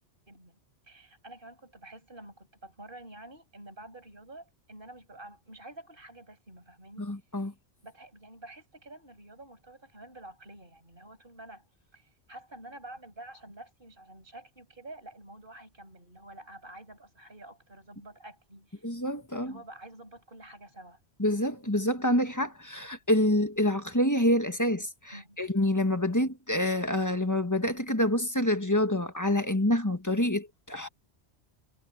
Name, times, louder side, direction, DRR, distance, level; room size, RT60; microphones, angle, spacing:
voice 1, 0.3-0.6 0.9-7.1 7.8-11.6 11.9-18.8 19.3-21.0 25.1-25.4, right 1 dB, 50° right, 8.4 m, -49 dB
voice 2, 7.0-7.5 18.8-19.5 21.2-30.9, left 1 dB, 15° left, 1.6 m, -27 dB
omnidirectional pair, 1.2 m